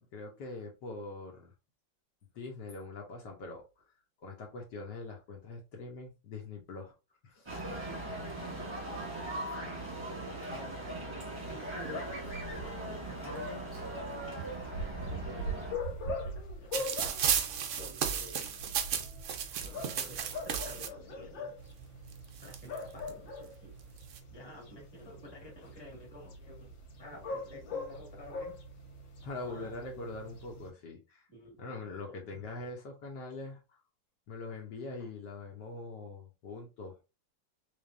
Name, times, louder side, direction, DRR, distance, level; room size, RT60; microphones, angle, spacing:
voice 1, 0.1-1.5 2.3-3.7 4.2-6.9 7.2-7.5 29.2-31.2 31.6-33.8 34.3-37.0, left 3 dB, 70° left, 1.4 m, -43 dB
sound 1, 7.5-15.7, right 1 dB, 20° right, 1.0 m, -39 dB
voice 2, 9.3-9.8 10.2-11.0 11.4-12.0 12.4-13.7 14.8-15.8 16.2-17.2 17.8-18.6 19.6-21.5 22.4-23.7 24.3-26.7 27.0-28.6 29.4-29.8 31.3-31.6, left 1 dB, 15° left, 1.6 m, -51 dB
sound 2, 11.8-30.7, left 1 dB, 90° left, 2.1 m, -42 dB
sound 3, 16.7-20.9 21.8-21.9 22.1-23.1 23.8-24.2, right 8 dB, 80° right, 0.6 m, -33 dB
4.1 x 3.3 x 2.5 m
omnidirectional pair, 2.0 m